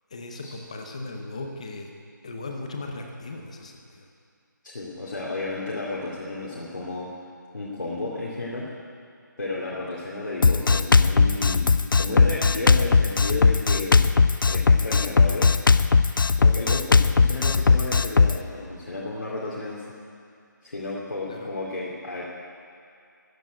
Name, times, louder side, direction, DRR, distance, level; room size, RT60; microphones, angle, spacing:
voice 1, 0.1-1.9 2.2-4.1 21.3-21.5, left 2 dB, 20° left, 3 dB, 0.8 m, -37 dB
voice 2, 4.6-7.1 7.5-8.7 9.4-11.7 11.9-14.0 14.5-15.5 16.4-19.9 20.6-22.3, left 2 dB, 70° left, -6 dB, 2.4 m, -32 dB
Drum kit, 10.4-18.4, left 4 dB, 85° left, 0.5 m, -18 dB
14.0 x 7.1 x 9.0 m, 2.5 s
figure-of-eight pair, 175°, 11 cm